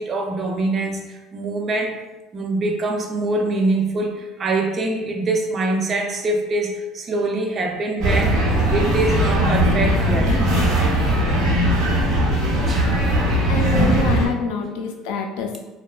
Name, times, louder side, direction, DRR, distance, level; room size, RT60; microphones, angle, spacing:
voice 1, 0.0-2.0 2.3-10.4 12.6-13.0 13.9-14.1 14.6-14.8, right 2 dB, 30° right, 3 dB, 0.3 m, -24 dB
sound 1, 8.0-14.3, equal, 70° right, 0.7 m, -19 dB
voice 2, 13.5-15.6, left 5 dB, 90° left, 3 dB, 0.3 m, -26 dB
2.7 x 2.2 x 2.3 m, 1.1 s
cardioid pair, 145°, 0 cm